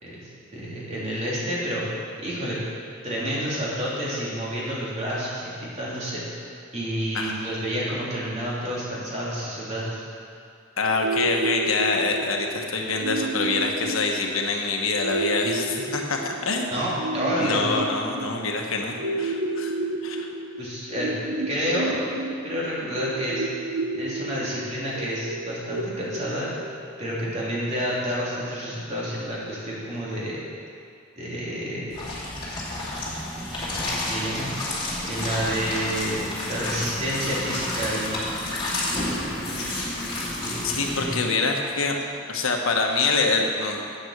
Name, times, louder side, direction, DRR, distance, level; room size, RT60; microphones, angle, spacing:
voice 1, 0.0-1.8 2.2-2.6 3.0-6.2 6.7-10.0 16.7-17.6 20.6-21.2 21.5-22.1 22.4-23.4 23.9-26.5 27.0-30.4 31.2-32.0 33.8-34.5 35.0-38.4 40.2-41.2, equal, 35° right, -7 dB, 3.3 m, -29 dB
voice 2, 10.8-16.8 17.4-19.8 20.0-20.3 40.6-42.0 42.3-44.0, left 3 dB, 85° left, 2 dB, 1.3 m, -25 dB
sound 1, 11.0-26.9, right 2 dB, 85° right, 0.9 m, -31 dB
sound 2, 31.9-41.1, left 1 dB, 25° left, 2.3 m, -30 dB
9.4 x 8.0 x 7.5 m, 2.4 s
head